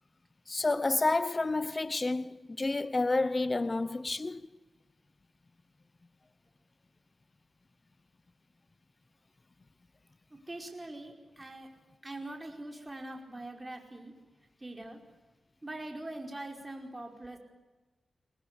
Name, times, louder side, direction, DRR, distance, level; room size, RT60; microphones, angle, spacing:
voice 1, 0.5-4.4, left 2 dB, 30° left, 0.9 m, -30 dB
voice 2, 10.3-11.7 12.0-14.1 14.6-15.0 15.6-17.4, right 1 dB, 20° right, 5.0 m, -43 dB
24.0 x 19.0 x 9.9 m
wide cardioid pair, 90°, 0 cm